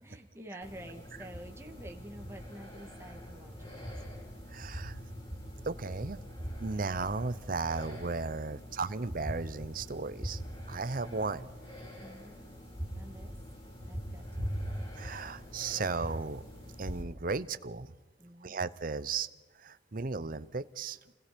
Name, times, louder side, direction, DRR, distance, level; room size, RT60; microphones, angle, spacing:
voice 1, 0.0-4.3 12.0-12.5 12.9-13.4 13.9-14.9 18.2-18.6, right 1 dB, 15° right, 3 dB, 2.2 m, -49 dB
sound 1, 0.6-17.0, equal, 30° left, 6.5 m, -42 dB
voice 2, 4.5-5.0 5.6-6.2 6.6-10.4 10.7-11.5 15.0-16.4 16.8-17.9 18.4-19.3 19.6-21.0, right 4 dB, 50° right, 13 dB, 0.7 m, -35 dB
29.0 x 21.0 x 5.3 m, 1.2 s
head